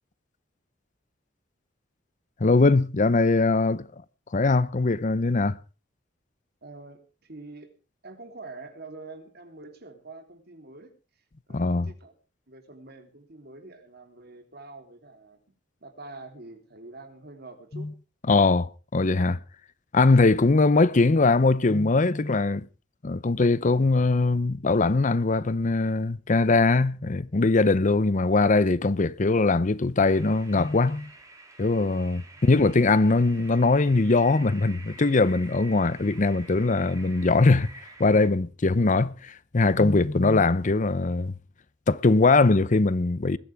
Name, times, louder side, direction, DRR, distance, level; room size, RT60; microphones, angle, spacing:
voice 1, 2.4-3.9 4.3-5.6 11.5-11.9 17.7-17.9 18.3-19.4 19.9-22.7 23.0-31.1 31.6-41.3 41.9-43.4, left 3 dB, 45° left, 0.7 m, -21 dB
voice 2, 6.6-7.7 8.0-10.9 11.5-12.1 12.5-15.4 15.8-17.9 32.3-32.5, right 3 dB, 60° right, 3.5 m, -45 dB
sound 1, 30.0-38.3, right 2 dB, 20° right, 4.0 m, -48 dB
20.5 x 14.0 x 3.5 m
head